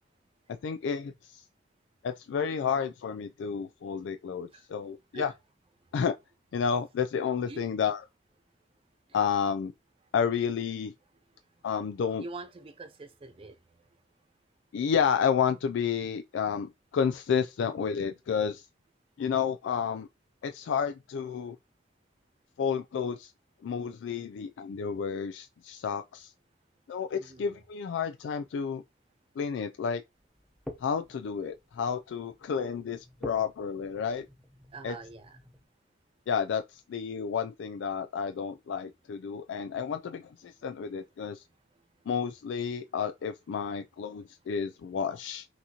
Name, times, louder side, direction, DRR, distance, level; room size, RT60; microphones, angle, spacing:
voice 1, 0.6-1.5 2.0-5.3 5.9-6.1 6.5-8.0 9.1-9.7 10.1-10.9 11.6-12.2 14.7-18.7 19.2-20.1 20.4-21.6 22.6-23.3 23.6-26.3 26.9-28.8 29.4-30.0 30.8-34.3 34.8-35.0 36.3-41.4 42.1-45.5, left 7 dB, 80° left, 0.3 m, -31 dB
voice 2, 12.2-13.6 27.1-27.5 34.7-35.4, right 3 dB, 30° right, 0.5 m, -44 dB
sound 1, 30.1-35.6, left 1 dB, ahead, 0.8 m, -49 dB
5.8 x 2.7 x 2.9 m
head